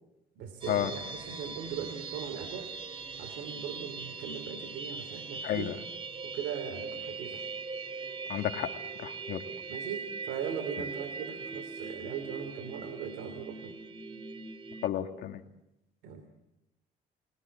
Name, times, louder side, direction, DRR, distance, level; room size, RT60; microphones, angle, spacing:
voice 1, 0.4-2.7 3.2-5.8 6.2-7.4 9.7-13.7 16.0-16.2, right 7 dB, 85° right, 8 dB, 2.9 m, -39 dB
sound 1, 0.6-14.9, right 4 dB, 30° right, 2.1 m, -41 dB
voice 2, 5.4-5.8 8.3-8.7 9.0-9.4 14.8-15.4, left 11 dB, 70° left, 6 dB, 2.0 m, -31 dB
30.0 x 20.0 x 8.5 m, 0.92 s
cardioid pair, 110°, 17 cm